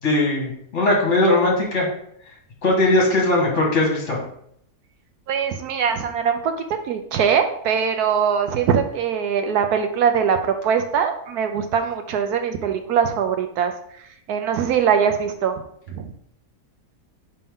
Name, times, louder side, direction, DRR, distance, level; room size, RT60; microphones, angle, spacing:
voice 1, 0.0-1.9 2.6-4.2, left 2 dB, 45° left, -2 dB, 1.8 m, -19 dB
voice 2, 5.3-6.5 6.9-13.7 14.3-15.5 15.9-16.1, right 7 dB, 75° right, 7 dB, 1.1 m, -22 dB
5.6 x 5.3 x 3.6 m, 0.70 s
omnidirectional pair, 1.8 m